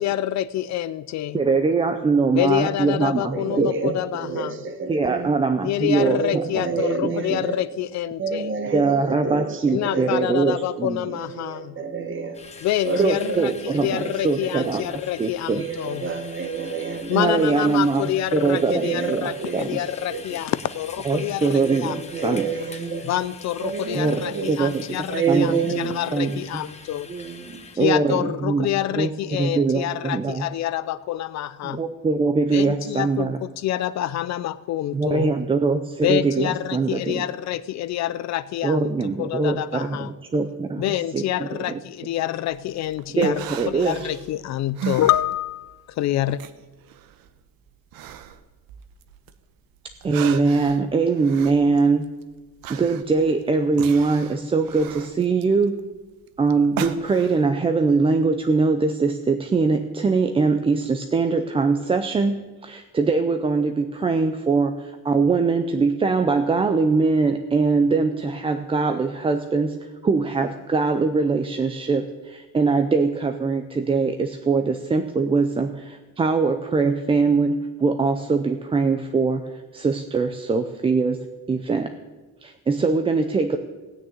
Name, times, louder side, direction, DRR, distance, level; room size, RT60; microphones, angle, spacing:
voice 1, 0.0-1.4 2.3-4.6 5.6-8.5 9.7-11.8 12.6-16.0 17.1-22.4 23.0-27.1 27.7-31.8 32.5-35.3 36.0-40.1 40.8-46.4, left 13 dB, 50° left, 16 dB, 0.4 m, -27 dB
voice 2, 1.3-4.0 4.9-6.6 7.0-7.1 8.7-11.0 13.0-14.8 15.2-15.6 17.1-19.8 21.0-22.5 23.9-25.0 25.3-25.6 26.1-26.6 27.8-29.1 29.4-30.5 31.6-33.4 34.9-37.3 38.6-40.8 41.1-41.2 41.7-41.8 43.2-44.1 50.0-52.0 52.7-55.8 56.4-81.9 82.4-83.6, right 4 dB, 15° right, 7 dB, 0.5 m, -22 dB
voice 3, 3.0-5.3 6.0-7.6 8.2-10.3 11.1-12.4 12.8-13.6 13.9-14.9 15.6-17.5 18.4-19.7 20.1-20.4 21.4-23.1 23.6-24.5 25.1-26.0 27.1-27.6, right 5 dB, 35° right, 7 dB, 1.7 m, -29 dB
sound 1, 12.3-27.8, left 4 dB, 20° left, 1.2 m, -44 dB
sound 2, 42.5-45.8 46.1-49.4 49.8-57.5, right 8 dB, 75° right, 1.0 m, -36 dB
17.0 x 6.6 x 9.2 m, 1.2 s
cardioid pair, 170°, 35 cm